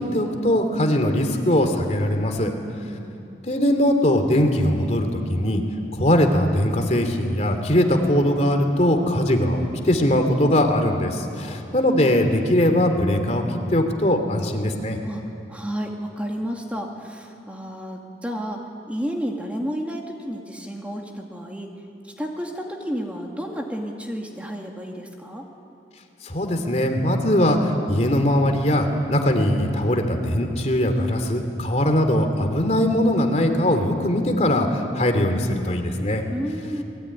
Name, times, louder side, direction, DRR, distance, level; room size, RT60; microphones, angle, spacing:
voice 1, 0.0-2.5 3.4-5.6 5.9-13.4 13.7-15.0 26.2-36.2, left 1 dB, 40° left, 5 dB, 2.9 m, -21 dB
voice 2, 2.4-3.2 11.4-11.7 15.0-15.2 15.5-18.6 18.9-21.7 22.0-25.5 36.3-36.8, equal, 10° right, 0 dB, 2.2 m, -31 dB
28.5 x 21.5 x 9.8 m, 3.0 s
head